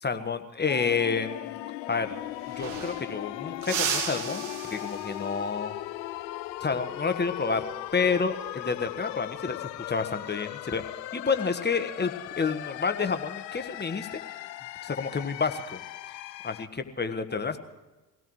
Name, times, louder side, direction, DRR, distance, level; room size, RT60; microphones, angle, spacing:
voice 1, 0.0-1.6 1.9-2.1 2.6-5.7 6.6-7.6 7.9-10.8 11.1-14.2 14.8-15.8 16.4-17.6, left 5 dB, 20° left, 8 dB, 1.4 m, -29 dB
sound 1, 0.7-16.7, left 15 dB, 85° left, 0.6 m, -38 dB
sound 2, 2.0-2.1 2.3-3.2 3.6-5.4 7.9-8.2 9.6-10.1, right 7 dB, 70° right, 2.3 m, -34 dB
24.5 x 17.5 x 3.2 m, 1.1 s
hypercardioid pair, 55°, 50 cm